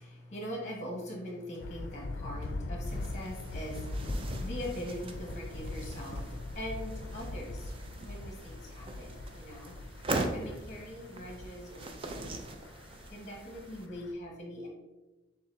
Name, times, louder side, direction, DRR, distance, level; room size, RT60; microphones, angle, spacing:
voice 1, 0.0-7.7 8.0-9.7 10.2-12.3 13.1-14.7, left 1 dB, 40° left, -1 dB, 1.3 m, -42 dB
Thunder, 1.6-14.1, left 2 dB, 80° left, 0.4 m, -41 dB
sound 1, 2.8-13.9, right 2 dB, 30° right, 0.4 m, -41 dB
6.8 x 2.7 x 2.6 m, 1.1 s
head